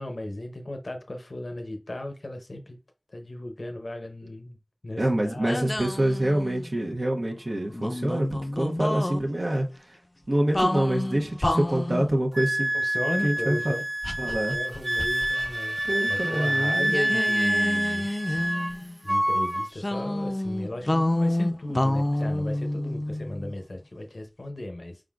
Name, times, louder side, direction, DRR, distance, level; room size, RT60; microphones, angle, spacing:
voice 1, 0.0-2.8 3.1-4.6 4.8-5.7 12.7-13.8 14.3-15.8 16.1-18.1 19.0-25.0, left 1 dB, 85° left, 0.6 m, -35 dB
voice 2, 5.0-10.0 10.3-12.7 13.2-13.8 14.2-14.5 15.8-16.9, right 1 dB, 80° right, 0.8 m, -26 dB
sound 1, 5.5-6.8 7.7-9.2 10.5-12.1 14.0-15.5 15.8-15.9 16.9-19.0 19.8-23.5, left 1 dB, 45° left, 0.4 m, -28 dB
Wind instrument woodwind instrument, 12.4-18.8 19.1-19.7, right 1 dB, 30° right, 0.4 m, -27 dB
4.8 x 3.6 x 2.4 m
wide cardioid pair, 45°, 0 cm